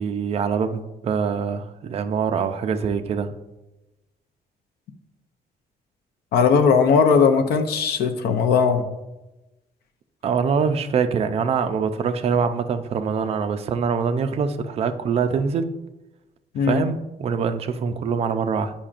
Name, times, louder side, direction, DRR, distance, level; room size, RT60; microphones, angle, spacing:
voice 1, 0.0-3.3 10.2-15.7 16.6-18.7, right 6 dB, 40° right, 8 dB, 0.4 m, -24 dB
voice 2, 6.3-8.8 16.5-16.8, left 5 dB, 85° left, 7 dB, 0.6 m, -18 dB
8.5 x 5.6 x 2.5 m, 1.0 s
cardioid pair, 170°, 16 cm